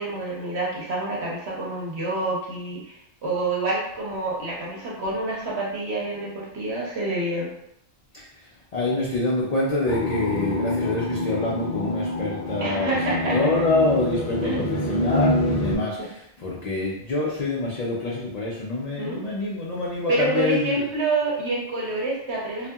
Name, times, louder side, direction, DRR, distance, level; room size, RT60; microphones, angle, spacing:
voice 1, 0.0-7.5 12.6-13.4 14.4-14.8 19.0-19.2 20.1-22.7, right 2 dB, 65° right, -4 dB, 1.0 m, -27 dB
voice 2, 8.7-20.9, left 2 dB, 80° left, -5 dB, 0.3 m, -26 dB
sound 1, 9.9-15.8, left 1 dB, 65° left, 0.8 m, -26 dB
2.6 x 2.4 x 2.3 m, 0.79 s
omnidirectional pair, 1.2 m